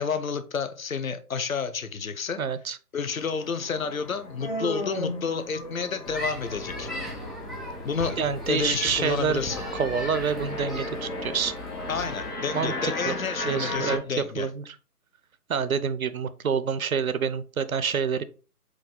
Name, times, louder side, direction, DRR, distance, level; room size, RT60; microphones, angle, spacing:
voice 1, 0.0-2.4 2.9-6.9 7.8-8.2 8.5-9.6 11.9-14.5, left 5 dB, 60° left, 0.6 m, -30 dB
voice 2, 2.4-2.8 8.2-9.4 9.7-11.5 12.5-13.1 13.4-14.8 15.5-18.2, right 6 dB, 65° right, 0.5 m, -27 dB
sound 1, 3.1-14.0, left 2 dB, 80° left, 1.4 m, -37 dB
Human voice, 4.4-6.1, left 1 dB, 40° left, 0.9 m, -33 dB
sound 2, 6.0-12.3, left 1 dB, ahead, 0.4 m, -37 dB
4.7 x 2.2 x 3.8 m
figure-of-eight pair, 155°, 46 cm